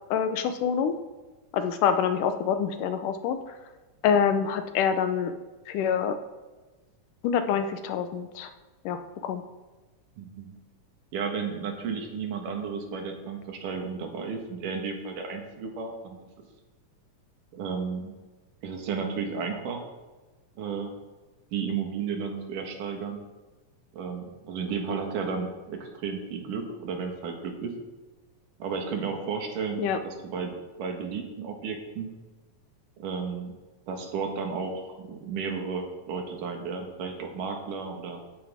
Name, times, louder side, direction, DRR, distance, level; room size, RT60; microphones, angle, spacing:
voice 1, 0.1-0.9 1.5-3.4 4.0-5.3 5.7-6.2 7.2-8.5 8.9-9.4 29.8-30.0, left 7 dB, 90° left, 9 dB, 2.4 m, -26 dB
voice 2, 10.2-10.5 11.1-16.2 17.5-18.1 18.6-19.8 20.6-20.9 21.5-23.2 23.9-27.7 28.6-30.5 30.8-32.1 33.0-33.5 33.9-38.2, right 5 dB, 85° right, 3 dB, 3.2 m, -33 dB
16.5 x 9.5 x 3.6 m, 1.2 s
omnidirectional pair, 3.6 m